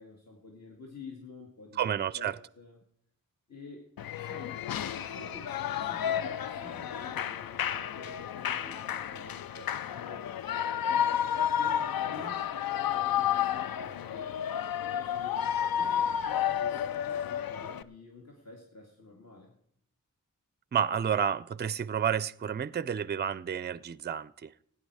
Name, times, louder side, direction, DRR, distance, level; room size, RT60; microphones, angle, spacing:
voice 1, 0.0-2.8 3.5-3.9 4.2-4.6 5.0-10.3 11.2-14.3 14.8-19.5, left 3 dB, 50° left, 0 dB, 2.3 m, -49 dB
voice 2, 1.8-2.3 20.7-24.5, right 8 dB, 30° right, 19 dB, 0.4 m, -30 dB
Shout / Cheering, 4.0-17.8, left 9 dB, 90° left, 0.5 m, -31 dB
17.0 x 9.5 x 4.8 m, 0.69 s
wide cardioid pair, 70°, 34 cm